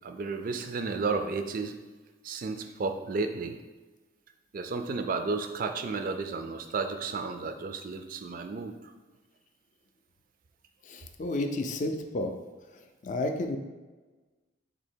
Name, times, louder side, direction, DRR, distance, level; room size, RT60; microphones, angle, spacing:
voice 1, 0.0-1.8 2.2-3.6 4.5-8.8, right 4 dB, 45° right, 7 dB, 0.3 m, -32 dB
voice 2, 10.9-12.3 13.0-13.6, left 2 dB, 40° left, 6 dB, 0.4 m, -31 dB
4.0 x 2.8 x 4.4 m, 1.3 s
head